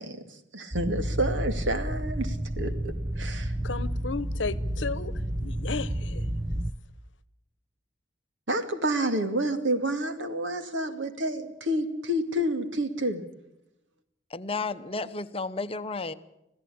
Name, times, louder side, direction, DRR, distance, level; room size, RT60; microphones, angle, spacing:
voice 1, 0.0-3.5 8.5-13.2, right 1 dB, 80° right, 2.4 m, -29 dB
sound 1, 0.7-6.7, right 1 dB, 10° right, 0.7 m, -31 dB
voice 2, 3.6-6.3, left 4 dB, 75° left, 1.0 m, -34 dB
voice 3, 14.3-16.1, left 3 dB, 30° left, 0.9 m, -32 dB
26.5 x 16.0 x 8.7 m
head